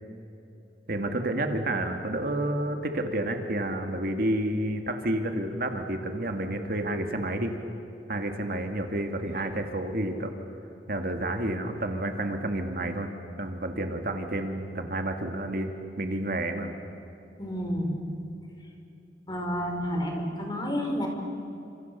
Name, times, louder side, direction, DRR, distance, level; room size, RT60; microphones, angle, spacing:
voice 1, 0.9-7.6 8.1-10.3 10.9-13.1 13.4-16.7, right 1 dB, 55° right, 5 dB, 2.2 m, -30 dB
voice 2, 17.4-18.0 19.3-21.1, equal, 25° left, 2 dB, 5.0 m, -30 dB
29.5 x 27.5 x 7.0 m, 2.9 s
head